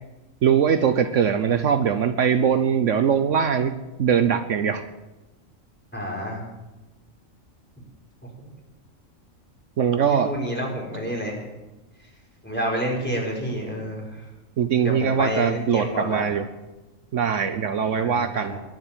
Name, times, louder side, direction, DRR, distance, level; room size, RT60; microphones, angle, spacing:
voice 1, 0.4-3.7 4.0-4.8 9.8-10.3 14.6-16.5 17.1-18.6, right 7 dB, 70° right, 9 dB, 1.2 m, -21 dB
voice 2, 5.9-6.4 8.4-8.5 10.1-11.4 12.4-14.0 14.8-16.3 17.9-18.6, equal, 10° left, -2 dB, 4.9 m, -29 dB
22.0 x 7.8 x 7.4 m, 1.1 s
omnidirectional pair, 1.4 m